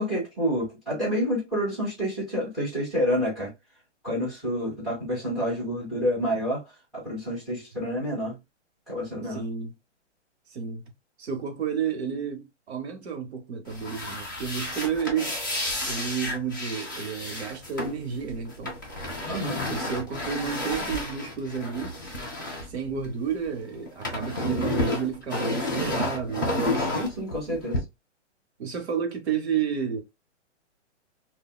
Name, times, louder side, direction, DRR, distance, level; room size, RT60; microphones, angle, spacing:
voice 1, 0.0-3.5 4.0-6.6 6.9-8.4 8.9-9.4 19.2-19.6 26.9-27.8, equal, ahead, 1.1 m, -28 dB
voice 2, 9.3-9.7 10.5-10.8 11.2-15.4 15.9-18.8 19.7-22.0 22.7-27.0 28.6-30.0, right 7 dB, 60° right, 0.9 m, -31 dB
sound 1, 13.7-23.5 23.7-27.8, left 1 dB, 20° left, 0.3 m, -31 dB
3.7 x 2.2 x 2.2 m
hypercardioid pair, 160°, 36 cm